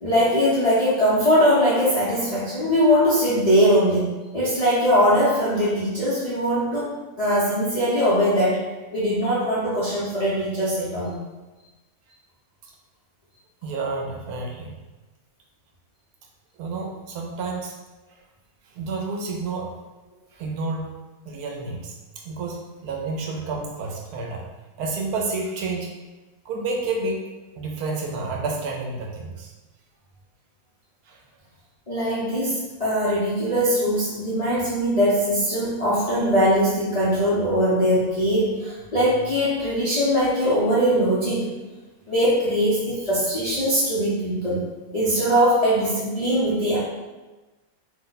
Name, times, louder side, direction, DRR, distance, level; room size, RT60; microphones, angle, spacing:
voice 1, 0.0-8.7 8.9-11.1 31.9-41.5 42.1-44.6 44.9-46.8, equal, 50° left, -10 dB, 0.4 m, -21 dB
voice 2, 13.6-14.7 16.6-17.8 18.7-19.7 20.3-22.0 22.2-24.4 24.8-25.9 26.4-27.3 27.6-29.5 31.1-31.2, right 3 dB, 75° right, 0 dB, 1.0 m, -30 dB
2.8 x 2.1 x 3.9 m, 1.2 s
omnidirectional pair, 1.7 m